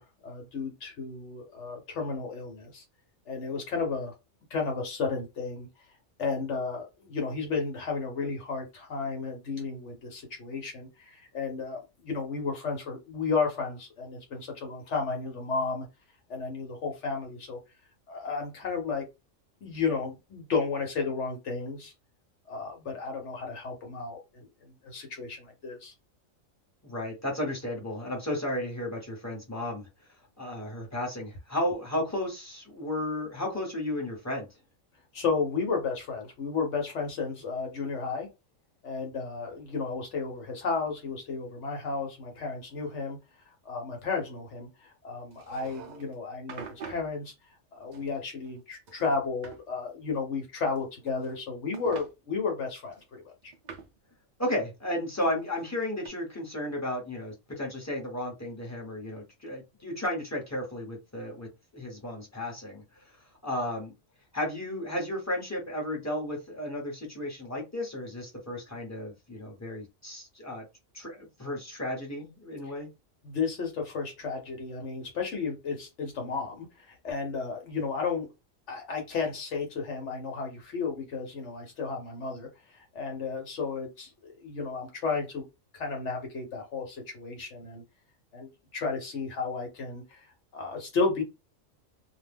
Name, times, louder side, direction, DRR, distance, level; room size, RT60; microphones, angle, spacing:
voice 1, 0.0-2.8 3.3-4.1 4.5-5.7 6.2-15.9 16.3-17.6 18.1-19.0 19.6-21.9 22.5-24.5 24.8-25.9 35.1-38.3 38.8-43.2 43.6-47.3 47.7-53.5 72.7-72.8 73.2-78.3 78.7-85.4 85.7-87.8 88.3-90.3 90.5-91.2, left 4 dB, 65° left, 1.1 m, -33 dB
voice 2, 26.8-29.9 30.4-34.5 54.4-61.5 61.7-63.2 63.4-63.9 64.3-70.6 70.9-72.9, left 1 dB, 15° left, 0.9 m, -33 dB
sound 1, 45.3-46.1 46.5-47.1 47.9-48.6 48.9-49.6 50.8-51.4 51.7-52.1 52.9-54.0 55.2-56.1, right 5 dB, 65° right, 0.4 m, -46 dB
2.4 x 2.2 x 3.4 m
omnidirectional pair, 1.4 m